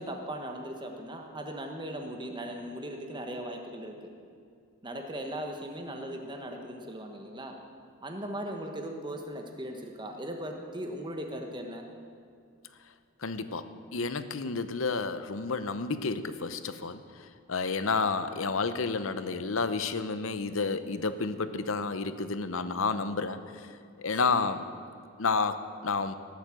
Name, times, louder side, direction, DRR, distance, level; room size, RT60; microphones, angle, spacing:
voice 1, 0.0-4.1 4.8-7.5 8.0-11.8 24.3-24.5, right 1 dB, 20° right, 3 dB, 1.3 m, -38 dB
voice 2, 13.2-17.0 17.5-23.4 24.0-24.6 25.2-26.1, left 4 dB, 65° left, 12 dB, 0.8 m, -30 dB
18.0 x 8.3 x 7.6 m, 2.3 s
head